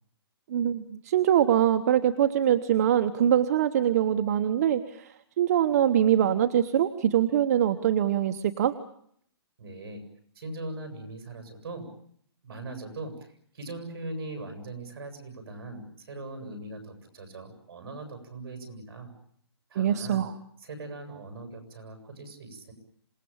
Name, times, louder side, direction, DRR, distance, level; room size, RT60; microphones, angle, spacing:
voice 1, 0.5-8.7 19.8-20.3, right 10 dB, 35° right, 9 dB, 1.0 m, -23 dB
voice 2, 9.6-10.0 10.3-11.9 12.4-19.1 19.7-20.3 20.6-22.7, right 2 dB, 60° right, 6 dB, 7.4 m, -40 dB
27.0 x 19.0 x 8.7 m, 0.67 s
hypercardioid pair, 170°, 14 cm